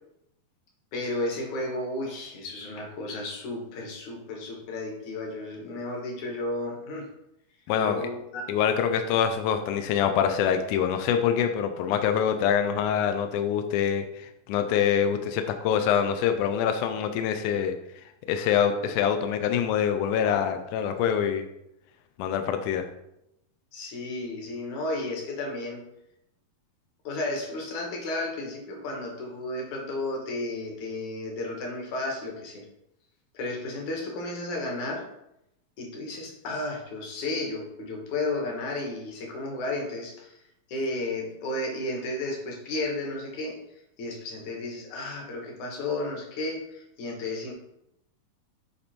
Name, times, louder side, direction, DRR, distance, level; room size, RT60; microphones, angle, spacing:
voice 1, 0.9-7.1 7.8-8.5 9.0-9.1 23.7-25.8 27.0-32.7 33.3-35.1 35.8-40.4 40.7-43.6 44.0-47.5, left 2 dB, 60° left, 0 dB, 2.6 m, -33 dB
voice 2, 7.7-8.0 8.5-17.7 18.3-21.4 22.2-22.8, left 8 dB, 90° left, 7 dB, 1.8 m, -25 dB
8.3 x 4.4 x 4.3 m, 0.82 s
omnidirectional pair, 4.3 m